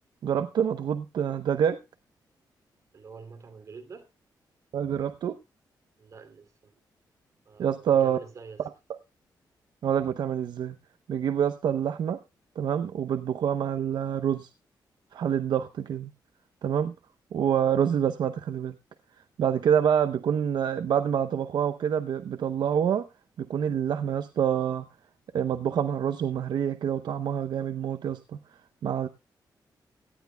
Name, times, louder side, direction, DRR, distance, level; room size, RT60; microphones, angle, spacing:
voice 1, 0.2-1.8 4.7-5.4 7.6-8.2 9.8-10.8 11.1-12.2 12.6-14.5 15.1-16.1 16.6-16.9 17.3-18.8 19.4-23.1 23.4-24.9 25.3-28.4 28.8-29.1, right 8 dB, 75° right, 9 dB, 0.7 m, -26 dB
voice 2, 2.9-4.1 6.0-6.8 7.4-8.7, right 5 dB, 45° right, 5 dB, 2.7 m, -47 dB
17.5 x 12.5 x 2.2 m, 0.25 s
wide cardioid pair, 165°, 8 cm